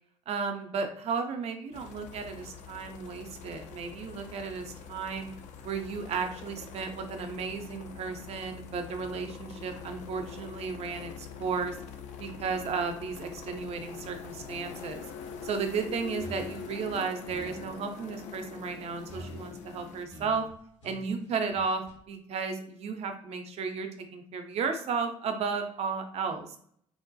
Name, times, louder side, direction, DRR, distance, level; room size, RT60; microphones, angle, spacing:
voice 1, 0.3-5.3 5.6-11.8 12.2-15.0 15.4-20.5 20.8-26.6, right 5 dB, 40° right, 5 dB, 0.5 m, -34 dB
sound 1, 1.7-20.1, left 6 dB, 50° left, 0.4 m, -44 dB
sound 2, 16.2-17.8 19.1-21.9, right 1 dB, 80° left, 1.0 m, -47 dB
3.1 x 2.1 x 2.5 m, 0.63 s
figure-of-eight pair, 50°, 16 cm